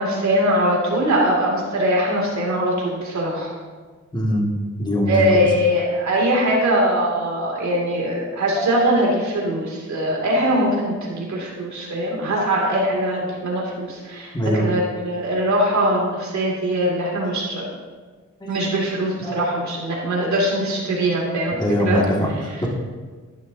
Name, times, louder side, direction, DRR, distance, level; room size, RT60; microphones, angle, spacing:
voice 1, 0.0-3.5 5.1-17.7 18.5-21.6 21.8-22.7, equal, 70° right, -3 dB, 2.5 m, -22 dB
voice 2, 4.1-4.4 4.8-5.3 8.6-8.7 12.4-12.5 14.3-14.6 18.4-18.7 19.2-19.4 20.2-20.3 20.9-21.1 21.6-22.3 22.6-22.7, equal, 15° left, -2 dB, 2.0 m, -22 dB
11.0 x 10.5 x 2.7 m, 1.4 s
cardioid pair, 90°, 30 cm